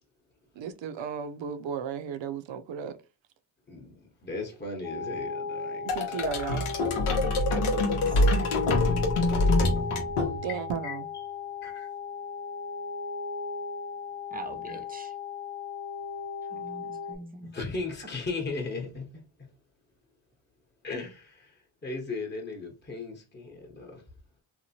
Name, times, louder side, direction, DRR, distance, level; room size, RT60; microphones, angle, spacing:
voice 1, 0.6-3.0 5.8-6.6 10.4-11.1, right 7 dB, 65° right, 0.5 m, -34 dB
voice 2, 3.7-6.3 7.7-7.8 8.0-8.7 10.5-11.0 11.6-11.9 14.7-14.8 17.4-19.5 20.8-24.0, left 3 dB, 20° left, 0.9 m, -38 dB
sound 1, 4.8-17.2, left 5 dB, 45° left, 0.7 m, -36 dB
sound 2, 5.9-10.7, left 2 dB, 85° left, 0.8 m, -25 dB
voice 3, 7.8-8.6 14.3-15.1 16.5-17.5, right 2 dB, 20° right, 0.5 m, -43 dB
2.9 x 2.1 x 2.7 m
cardioid pair, 50°, 48 cm